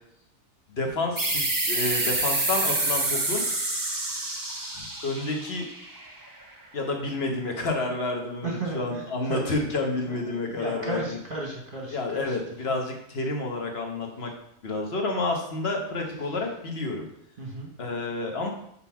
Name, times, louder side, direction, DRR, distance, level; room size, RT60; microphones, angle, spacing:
voice 1, 0.8-3.4 4.7-5.7 6.7-11.0 11.9-14.3 14.6-17.0 17.8-18.5, left 2 dB, 45° left, 2 dB, 1.3 m, -29 dB
sound 1, 1.2-6.4, right 2 dB, 15° right, 0.7 m, -28 dB
voice 2, 8.4-9.8 10.1-12.7 17.4-17.7, right 2 dB, 40° right, -1 dB, 1.1 m, -35 dB
5.4 x 4.2 x 5.7 m, 0.74 s
omnidirectional pair, 1.6 m